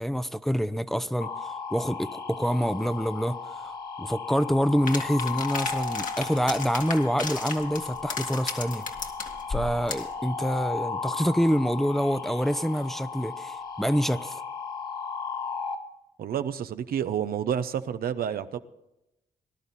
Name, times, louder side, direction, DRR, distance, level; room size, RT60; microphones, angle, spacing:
voice 1, 0.0-3.4 3.6-8.9 9.5-14.4, equal, ahead, 0.7 m, -26 dB
sound 1, 1.2-15.8, left 5 dB, 75° left, 2.0 m, -35 dB
sound 2, 4.9-10.1, left 4 dB, 60° left, 2.0 m, -35 dB
voice 2, 16.2-18.6, right 9 dB, 80° right, 0.7 m, -29 dB
20.0 x 11.5 x 4.2 m
cardioid pair, 65°, 15 cm